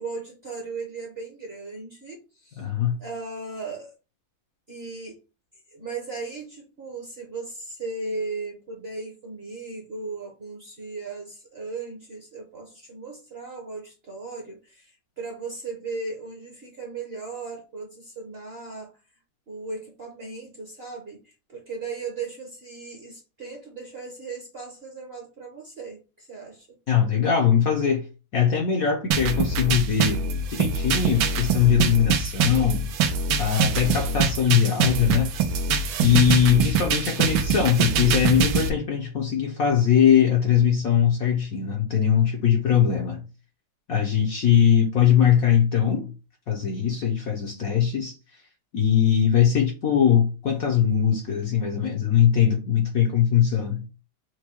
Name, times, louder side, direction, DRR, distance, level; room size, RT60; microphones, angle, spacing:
voice 1, 0.0-2.7 3.0-3.9 4.7-5.2 5.5-19.0 19.5-26.7, right 3 dB, 45° right, 0.9 m, -37 dB
voice 2, 2.6-3.0 26.9-28.1 28.3-32.9 33.4-35.3 36.0-43.3 43.9-46.1 46.5-48.1 48.7-53.9, left 8 dB, 60° left, 1.0 m, -21 dB
sound 1, 29.1-38.7, right 5 dB, 85° right, 1.5 m, -24 dB
4.6 x 2.2 x 4.4 m
omnidirectional pair, 2.1 m